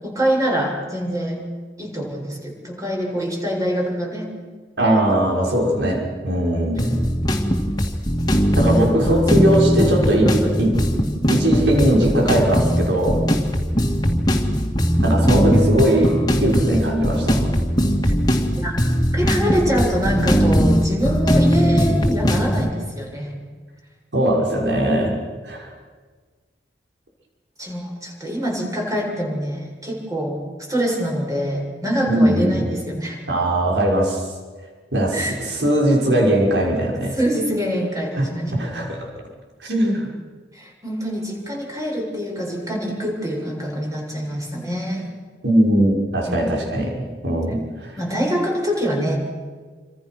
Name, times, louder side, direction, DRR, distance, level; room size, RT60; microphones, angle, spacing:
voice 1, 0.0-1.4 1.8-4.3 9.5-11.1 11.8-12.3 18.0-18.1 18.6-18.8 19.1-23.3 27.6-30.4 30.7-33.2 35.1-35.4 37.2-38.5 40.5-45.1 46.3-46.4 48.0-49.2, equal, 20° right, 0 dB, 7.4 m, -25 dB
voice 2, 4.8-7.0 8.5-10.3 10.6-10.8 11.3-13.2 15.0-17.5 24.1-25.2 25.4-25.7 32.1-32.6 33.3-34.3 34.9-37.1 38.2-39.1 39.6-40.1 45.4-46.9 47.2-48.0, right 1 dB, 80° right, 0 dB, 6.3 m, -20 dB
sound 1, 6.8-22.7, equal, 25° left, 2.6 m, -19 dB
29.0 x 26.0 x 6.4 m, 1.5 s
head